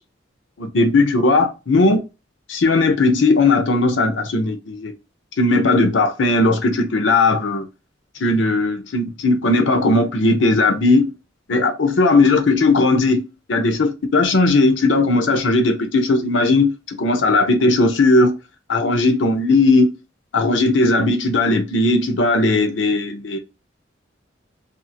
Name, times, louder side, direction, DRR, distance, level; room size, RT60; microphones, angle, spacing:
voice 1, 0.6-2.0 2.5-4.9 5.4-7.7 8.2-11.1 11.5-18.4 18.7-19.9 20.3-23.4, left 2 dB, 70° left, 0.6 m, -17 dB
2.6 x 2.4 x 2.7 m
head